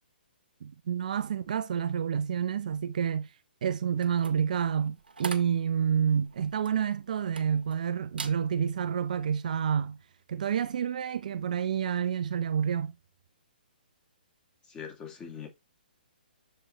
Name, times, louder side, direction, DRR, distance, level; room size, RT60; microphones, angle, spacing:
voice 1, 0.6-3.3 3.6-10.0 10.3-12.9, right 8 dB, 50° right, 0.5 m, -29 dB
sound 1, 3.9-7.8 8.1-8.4 8.9-9.2, right 4 dB, 70° right, 1.4 m, -42 dB
voice 2, 14.7-15.5, left 7 dB, 15° left, 2.2 m, -42 dB
7.6 x 4.8 x 3.0 m
figure-of-eight pair, 130°, 5 cm